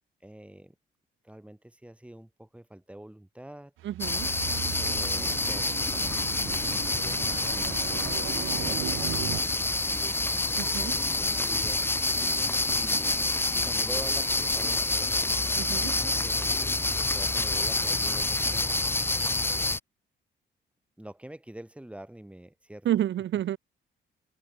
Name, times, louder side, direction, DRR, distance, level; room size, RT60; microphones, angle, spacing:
voice 1, 0.2-0.7 1.2-3.7 4.8-8.0 8.6-12.3 12.7-15.3 15.7-16.5 16.9-19.0 21.0-22.9, right 1 dB, 5° right, 7.9 m, -46 dB
voice 2, 3.8-4.3 10.6-10.9 15.5-15.9 22.8-23.6, right 11 dB, 70° right, 1.8 m, -29 dB
sound 1, 3.8-9.4, right 15 dB, 90° right, 3.4 m, -37 dB
sound 2, 4.0-19.8, left 2 dB, 10° left, 0.6 m, -27 dB
cardioid pair, 90°, 20 cm